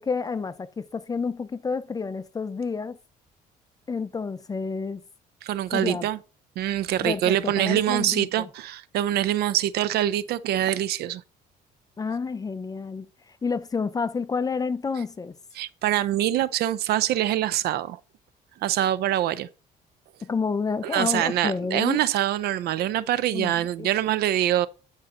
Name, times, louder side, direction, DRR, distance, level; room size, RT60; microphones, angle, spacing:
voice 1, 0.0-3.0 3.9-5.0 5.7-6.1 7.0-8.5 12.0-13.1 13.4-15.3 20.2-22.0 23.3-23.9, left 5 dB, 20° left, 0.6 m, -29 dB
voice 2, 5.4-6.2 6.6-11.2 15.6-18.0 18.6-19.5 20.9-24.7, right 12 dB, 70° right, 0.6 m, -24 dB
9.4 x 5.5 x 3.8 m
cardioid pair, 110°, 17 cm